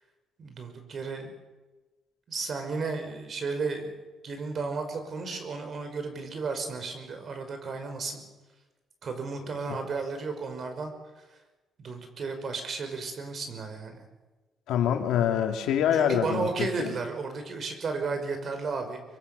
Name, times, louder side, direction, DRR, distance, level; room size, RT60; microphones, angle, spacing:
voice 1, 0.4-1.3 2.3-3.9 4.2-8.2 9.0-10.9 11.8-14.0 15.9-19.0, right 4 dB, 50° right, 6 dB, 5.5 m, -33 dB
voice 2, 14.7-16.9, left 9 dB, 85° left, 5 dB, 2.7 m, -25 dB
25.0 x 23.0 x 7.0 m, 1.2 s
cardioid pair, 90°, 0 cm